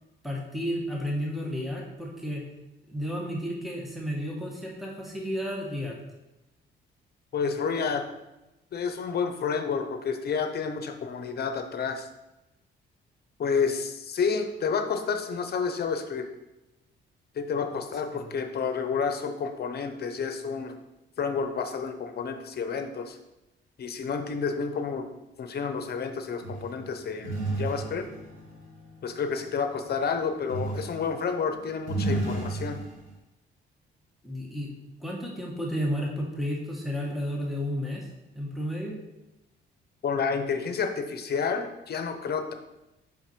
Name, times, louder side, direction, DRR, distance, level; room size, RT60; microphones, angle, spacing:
voice 1, 0.2-2.4 2.9-6.0 18.1-18.3 34.2-34.7 35.0-38.1 38.3-39.0, equal, ahead, -2 dB, 1.4 m, -32 dB
voice 2, 7.3-8.1 8.7-12.1 13.4-16.3 17.3-20.8 21.2-23.2 23.8-25.1 25.4-28.0 29.0-32.8 40.0-42.5, left 5 dB, 55° left, 7 dB, 0.9 m, -30 dB
sound 1, 26.4-29.6 30.5-31.2 31.5-33.1, right 2 dB, 80° right, 2.3 m, -33 dB
5.6 x 5.3 x 4.6 m, 0.97 s
cardioid pair, 90°, 20 cm